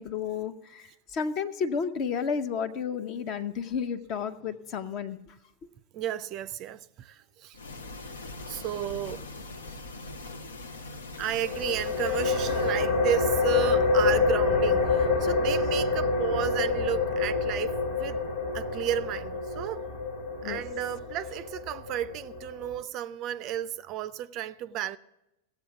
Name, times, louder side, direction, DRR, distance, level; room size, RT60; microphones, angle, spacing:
voice 1, 0.0-5.3 20.4-20.6, left 6 dB, 40° left, 0.8 m, -32 dB
voice 2, 5.9-7.6 8.5-9.2 11.2-18.2 18.5-19.9 20.4-25.0, right 11 dB, 40° right, 0.4 m, -33 dB
sound 1, 7.5-12.8, left 2 dB, 70° left, 0.8 m, -41 dB
sound 2, 11.4-22.8, left 4 dB, 55° left, 1.5 m, -27 dB
16.0 x 7.8 x 6.0 m
figure-of-eight pair, 90°, 0 cm